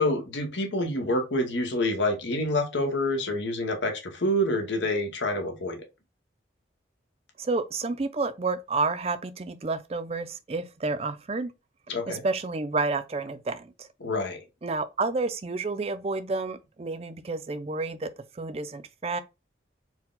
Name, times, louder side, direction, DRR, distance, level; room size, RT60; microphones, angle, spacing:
voice 1, 0.0-5.8 11.9-12.2 14.0-14.4, left 1 dB, 85° left, 1.1 m, -27 dB
voice 2, 7.4-11.5 12.1-13.9 14.6-18.1 18.4-19.2, right 3 dB, 35° right, 0.4 m, -30 dB
4.5 x 2.2 x 3.8 m
head